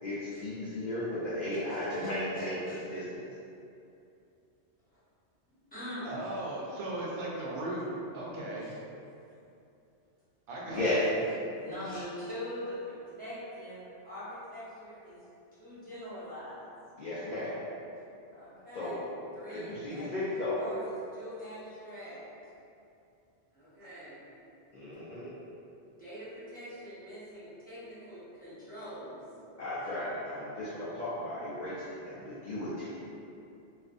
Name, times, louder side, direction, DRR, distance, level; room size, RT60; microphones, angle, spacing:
voice 1, 0.0-3.2 10.7-11.0 17.0-17.6 18.7-19.0 19.5-20.6 24.7-25.3 29.6-31.8 32.1-33.0, left 1 dB, 60° left, -11 dB, 0.5 m, -35 dB
voice 2, 2.4-2.8 5.7-6.1 8.6-8.7 10.8-10.9 11.6-15.2 15.6-16.7 18.3-20.1 20.6-22.2 23.5-24.2 25.9-29.2, equal, 10° left, -14 dB, 0.8 m, -43 dB
voice 3, 6.0-7.9 8.1-8.8 10.5-11.2 23.8-23.9, right 1 dB, 90° right, -4 dB, 0.9 m, -37 dB
2.5 x 2.3 x 2.4 m, 2.7 s
omnidirectional pair, 1.2 m